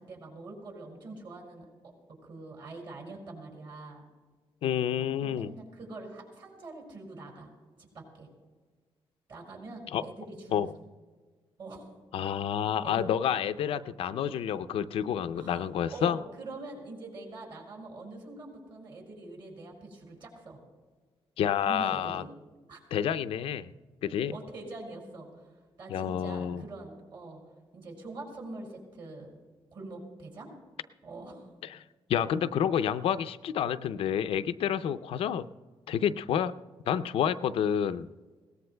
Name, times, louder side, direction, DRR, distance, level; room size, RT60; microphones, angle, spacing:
voice 1, 0.0-4.0 5.2-7.5 7.8-8.3 9.3-10.7 11.6-11.9 12.8-12.9 13.2-13.3 15.4-20.6 21.7-22.3 22.7-22.8 24.3-27.4 27.7-29.3 29.7-30.5 31.0-31.5, right 2 dB, 55° right, -1 dB, 5.3 m, -44 dB
voice 2, 4.6-5.5 9.9-10.0 10.5-10.7 12.1-16.2 21.4-22.2 22.9-23.7 24.0-24.3 25.9-26.6 31.6-31.8 32.1-35.5 35.9-36.5 36.9-38.1, left 9 dB, 85° left, 12 dB, 0.5 m, -29 dB
21.5 x 18.5 x 2.2 m, 1.4 s
cardioid pair, 130°, 9 cm